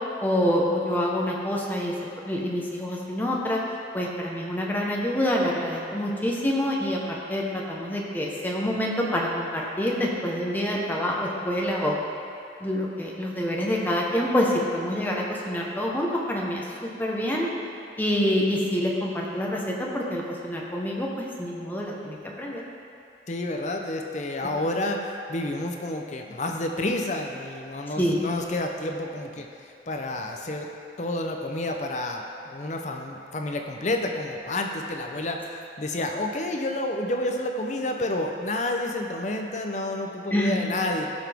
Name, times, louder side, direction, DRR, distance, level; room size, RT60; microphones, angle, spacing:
voice 1, 0.2-1.9 2.2-3.6 3.9-12.0 12.6-17.5 18.0-22.6 28.0-28.2 40.3-40.6, equal, 10° left, -3 dB, 1.1 m, -26 dB
voice 2, 23.3-30.7 31.0-41.1, left 1 dB, 40° left, 3 dB, 0.6 m, -30 dB
15.5 x 5.9 x 3.5 m, 2.5 s
head